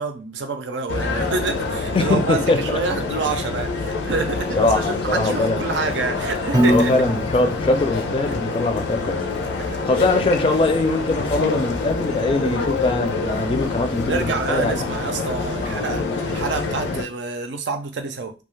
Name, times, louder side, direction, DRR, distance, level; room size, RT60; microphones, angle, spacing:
voice 1, 0.0-6.9 9.6-9.9 14.0-18.3, right 3 dB, 85° right, 0.5 m, -27 dB
sound 1, 0.9-17.0, left 3 dB, 85° left, 0.5 m, -26 dB
voice 2, 1.9-2.8 4.6-5.6 6.7-9.2 9.9-14.9 15.6-15.9 16.9-17.0, left 2 dB, 30° left, 0.4 m, -22 dB
Piano, 6.5-8.7, equal, 20° right, 0.5 m, -23 dB
2.3 x 2.3 x 3.1 m
head